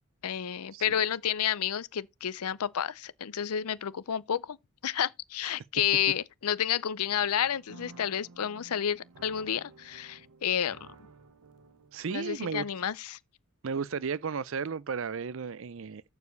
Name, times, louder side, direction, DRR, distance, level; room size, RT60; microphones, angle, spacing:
voice 1, 0.2-4.6 4.8-10.9 12.1-13.2, left 9 dB, 90° left, 0.5 m, -30 dB
sound 1, 7.1-12.7, right 3 dB, 90° right, 0.9 m, -54 dB
voice 2, 11.9-12.6 13.6-16.0, right 5 dB, 65° right, 0.5 m, -34 dB
7.1 x 4.7 x 6.8 m
head